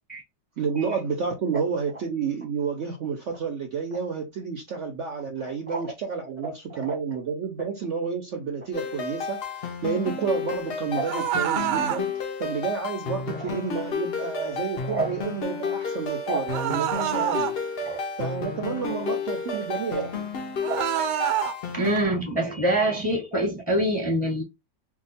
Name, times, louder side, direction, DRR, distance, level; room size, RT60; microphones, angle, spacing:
voice 1, 0.6-17.6 18.2-20.3, right 6 dB, 60° right, 0.8 m, -30 dB
sound 1, 8.7-22.0, left 5 dB, 60° left, 0.6 m, -32 dB
sound 2, 11.0-12.0 16.5-17.5 20.6-21.5, right 11 dB, 85° right, 1.2 m, -26 dB
voice 2, 21.7-24.4, right 1 dB, 5° left, 0.8 m, -25 dB
2.8 x 2.3 x 4.0 m
omnidirectional pair, 1.8 m